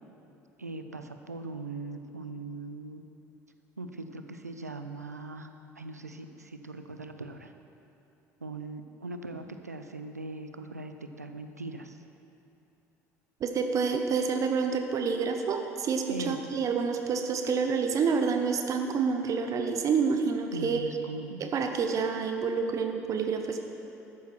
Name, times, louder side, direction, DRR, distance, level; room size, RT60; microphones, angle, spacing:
voice 1, 0.6-3.0 3.8-5.5 5.8-7.5 8.4-12.0 16.1-16.4 20.5-21.4, right 3 dB, 90° right, 7 dB, 0.5 m, -40 dB
voice 2, 13.4-20.8 21.4-23.6, right 5 dB, 40° right, 5 dB, 0.8 m, -28 dB
13.5 x 10.5 x 4.5 m, 2.8 s
figure-of-eight pair, 65°, 8 cm